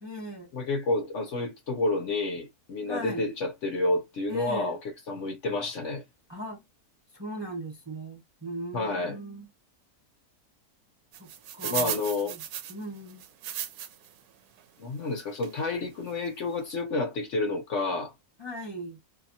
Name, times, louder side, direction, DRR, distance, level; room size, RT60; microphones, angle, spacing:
voice 1, 0.0-0.5 2.9-3.3 4.3-4.7 6.3-6.6 7.1-9.5 11.2-12.4 12.7-13.2 18.4-19.0, right 1 dB, 20° right, 0.9 m, -39 dB
voice 2, 0.5-4.8 5.1-6.0 8.7-9.2 11.6-12.4 14.8-18.1, left 2 dB, 55° left, 1.0 m, -29 dB
sound 1, 11.1-14.1 14.6-14.7 15.4-15.6 16.1-16.2 16.4-16.6, right 10 dB, 75° right, 1.0 m, -35 dB
2.8 x 2.2 x 2.7 m
omnidirectional pair, 1.6 m